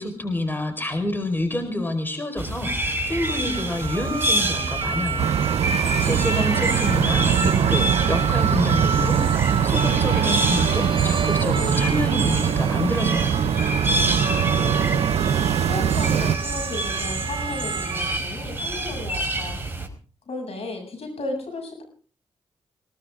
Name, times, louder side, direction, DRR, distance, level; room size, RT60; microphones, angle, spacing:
voice 1, 0.0-5.3 6.0-13.4, left 1 dB, 20° left, 6 dB, 4.8 m, -28 dB
sound 1, 2.4-19.9, right 1 dB, 20° right, 4.9 m, -28 dB
sound 2, 3.1-18.2, right 5 dB, 45° right, 0.8 m, -31 dB
sound 3, 5.2-16.4, right 9 dB, 80° right, 0.7 m, -22 dB
voice 2, 14.1-15.0 15.6-19.6 20.3-21.8, left 2 dB, 65° left, 3 dB, 7.5 m, -34 dB
20.5 x 18.0 x 3.7 m, 0.38 s
supercardioid pair, 50°, 11 cm